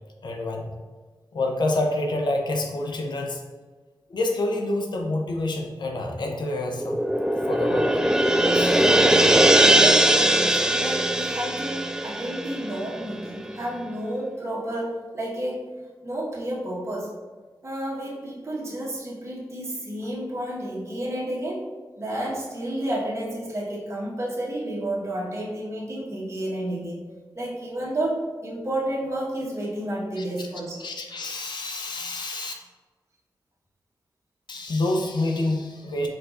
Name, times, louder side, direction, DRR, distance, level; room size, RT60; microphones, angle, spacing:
voice 1, 0.2-0.7 1.3-3.4 4.1-7.0 7.4-7.9 8.5-8.9 30.2-30.5 30.8-32.5 34.5-36.1, left 2 dB, 70° left, 2 dB, 0.6 m, -27 dB
sound 1, 6.7-13.3, right 1 dB, 10° right, 0.3 m, -20 dB
voice 2, 8.8-9.2 9.6-15.8 16.0-17.1 17.6-21.7 22.0-27.1 27.3-30.8, right 1 dB, 35° right, -5 dB, 1.1 m, -31 dB
4.6 x 4.0 x 2.4 m, 1.3 s
cardioid pair, 50°, 8 cm